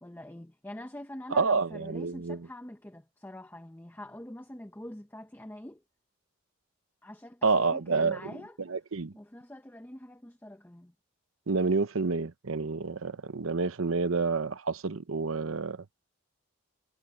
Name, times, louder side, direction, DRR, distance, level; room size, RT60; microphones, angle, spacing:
voice 1, 0.0-5.8 7.0-8.6 9.1-10.9, left 1 dB, 10° left, 0.7 m, -45 dB
voice 2, 1.3-2.4 7.4-8.3 8.7-9.1 11.5-15.8, right 4 dB, 80° right, 0.8 m, -28 dB
head